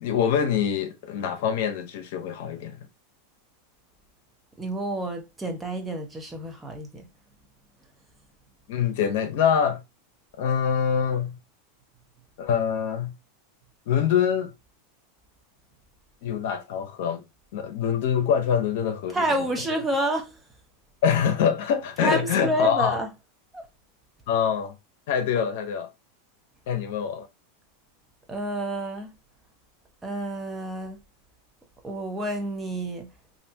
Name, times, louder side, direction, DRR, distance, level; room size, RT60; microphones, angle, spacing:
voice 1, 0.0-2.8 8.7-9.8 10.4-11.4 12.4-13.2 13.9-14.5 16.2-17.2 17.5-19.3 21.0-23.0 24.3-24.8 25.1-25.9 26.7-27.3, left 8 dB, 65° left, 0.8 m, -24 dB
voice 2, 4.6-7.1 19.1-20.4 22.0-23.1 23.5-23.6 28.3-29.1 30.0-31.0 31.8-33.1, right 1 dB, 10° right, 0.8 m, -29 dB
3.3 x 2.5 x 2.7 m
supercardioid pair, 145°, 0 cm